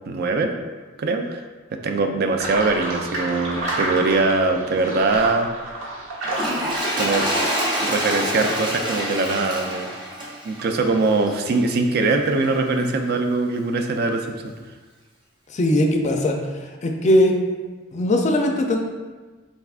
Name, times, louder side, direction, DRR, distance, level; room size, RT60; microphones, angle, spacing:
voice 1, 0.1-0.5 1.0-1.4 1.7-5.5 7.0-7.3 7.8-9.9 10.4-14.6, right 3 dB, 55° right, 5 dB, 0.4 m, -22 dB
sound 1, 2.4-7.5, right 1 dB, 70° right, 1.0 m, -29 dB
Toilet flush, 6.2-11.7 12.4-12.5, equal, 25° right, 0.7 m, -27 dB
voice 2, 15.5-16.4 16.8-17.4 17.9-18.8, left 1 dB, 35° left, 3 dB, 0.4 m, -19 dB
4.2 x 3.4 x 2.4 m, 1.3 s
head